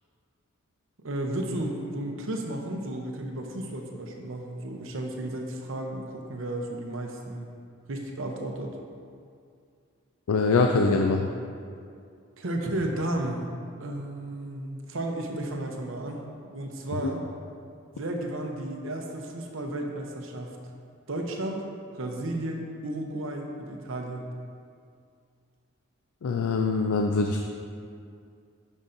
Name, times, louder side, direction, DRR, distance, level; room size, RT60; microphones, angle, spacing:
voice 1, 1.0-7.5 7.9-8.8 12.4-13.5 13.8-16.3 16.5-17.2 17.9-20.6 21.1-21.6 21.9-24.2, right 1 dB, 65° right, 2 dB, 0.7 m, -33 dB
voice 2, 10.3-11.3 17.0-17.1 26.2-27.4, left 3 dB, 85° left, 3 dB, 0.4 m, -23 dB
9.6 x 5.4 x 2.6 m, 2.3 s
head